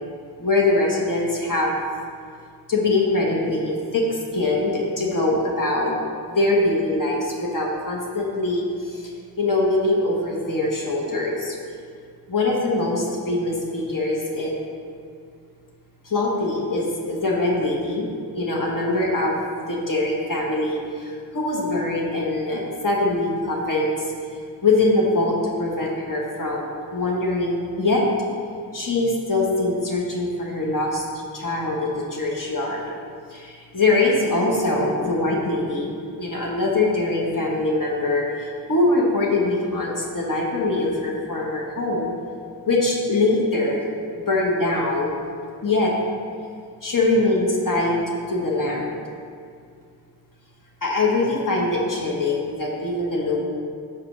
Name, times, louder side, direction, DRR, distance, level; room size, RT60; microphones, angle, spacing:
voice 1, 0.4-1.7 2.7-5.9 6.2-11.6 12.3-14.6 16.0-18.1 18.3-19.3 19.7-24.1 24.6-28.0 28.7-31.0 31.3-32.8 33.3-35.9 36.2-42.1 42.7-43.8 44.2-45.1 45.6-45.9 46.8-49.0 50.8-53.4, left 2 dB, 50° left, -2 dB, 1.2 m, -23 dB
4.9 x 4.5 x 6.0 m, 2.2 s
cardioid pair, 50°, 40 cm